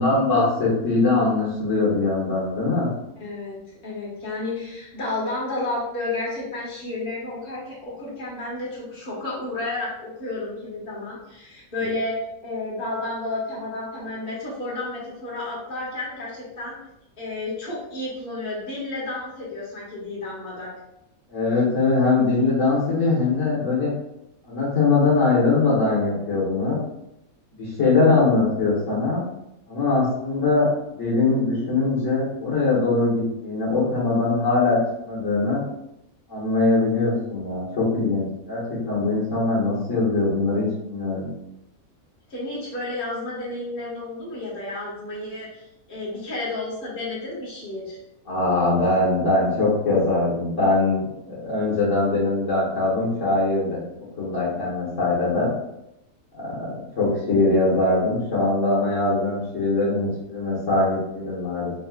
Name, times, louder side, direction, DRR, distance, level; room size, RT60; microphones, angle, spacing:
voice 1, 0.0-2.9 21.3-23.9 24.5-26.8 27.6-29.2 29.7-30.7 31.0-34.8 35.0-35.6 36.3-41.3 48.3-53.8 54.2-55.5 56.4-61.7, left 3 dB, 55° left, -8 dB, 1.6 m, -22 dB
voice 2, 3.2-12.1 12.4-16.8 17.2-20.7 42.3-45.6 45.9-48.0, left 2 dB, 40° left, -7 dB, 1.6 m, -31 dB
5.3 x 3.3 x 2.3 m, 0.84 s
omnidirectional pair, 1.6 m